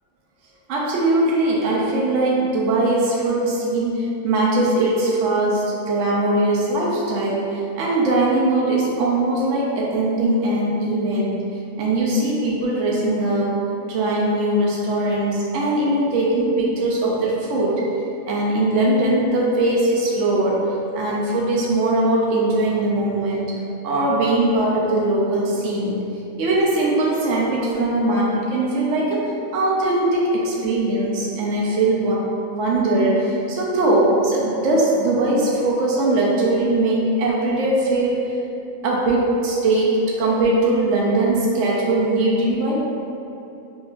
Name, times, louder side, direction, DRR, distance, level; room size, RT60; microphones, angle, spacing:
voice 1, 0.7-11.4 11.8-13.6 13.9-17.8 18.3-20.7 20.9-23.5 23.8-25.9 26.4-29.2 29.5-32.2 32.5-38.4 38.8-42.8, right 2 dB, 70° right, -4 dB, 0.9 m, -20 dB
5.4 x 2.5 x 2.3 m, 3.0 s
omnidirectional pair, 1.4 m